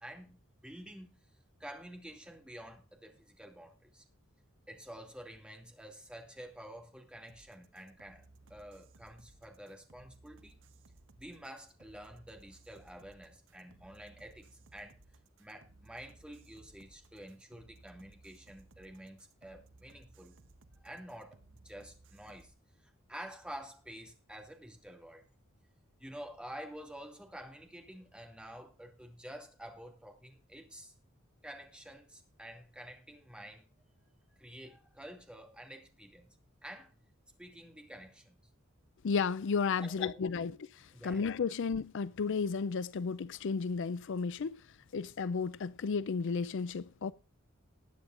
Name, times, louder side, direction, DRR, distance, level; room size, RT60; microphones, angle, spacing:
voice 1, 0.0-1.2 1.6-4.0 4.7-10.5 11.2-15.0 15.4-20.4 20.8-22.5 23.1-25.2 26.0-30.9 31.4-33.6 34.4-36.3 36.6-37.0 37.4-38.4 39.8-40.2 40.9-41.3, equal, 5° right, 2.4 m, -49 dB
sound 1, 7.3-22.5, right 2 dB, 65° right, 1.0 m, -61 dB
voice 2, 39.0-40.6 41.0-44.6 44.9-47.1, left 5 dB, 60° left, 0.5 m, -33 dB
20.0 x 9.1 x 2.5 m
head